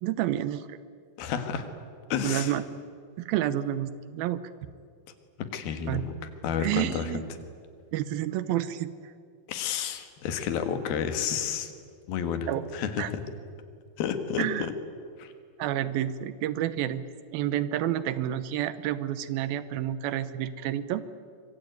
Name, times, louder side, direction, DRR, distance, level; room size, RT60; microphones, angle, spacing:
voice 1, 0.0-0.8 2.2-2.6 3.2-4.4 5.9-6.0 6.6-7.2 7.9-9.1 12.5-12.6 13.0-13.1 14.4-14.7 15.6-17.0 17.3-21.1, right 12 dB, 80° right, 14 dB, 2.7 m, -29 dB
voice 2, 1.2-1.7 2.1-2.6 5.5-6.1 6.4-7.1 9.5-11.7 12.1-13.2 14.0-14.7 15.2-15.3, left 7 dB, 85° left, 8 dB, 3.5 m, -30 dB
25.0 x 22.5 x 9.3 m, 2.2 s
omnidirectional pair, 4.2 m